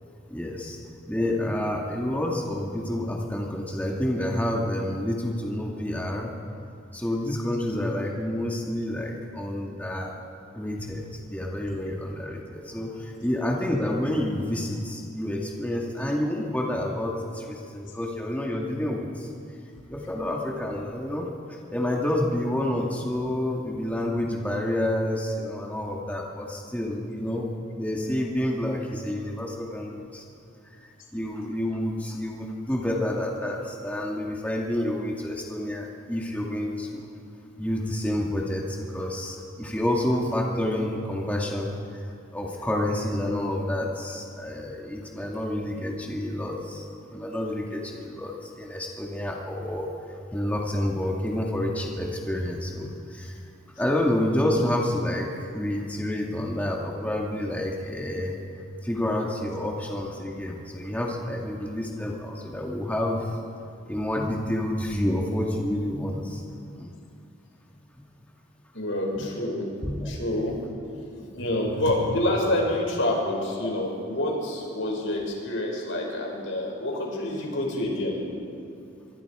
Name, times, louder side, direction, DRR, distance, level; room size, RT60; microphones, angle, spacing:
voice 1, 0.3-0.8 1.0-6.3 6.9-10.1 10.5-19.3 19.9-27.5 27.8-30.2 31.1-37.0 37.6-42.1 42.3-53.5 53.8-58.4 58.8-63.4 63.9-66.9 67.9-68.0 69.2-69.3 69.8-70.4 71.2-71.5, left 1 dB, 10° left, -1 dB, 1.9 m, -29 dB
voice 2, 68.7-69.6 70.1-70.5 71.3-78.2, left 1 dB, 85° left, -1 dB, 5.9 m, -27 dB
25.0 x 24.0 x 4.9 m, 2.4 s
head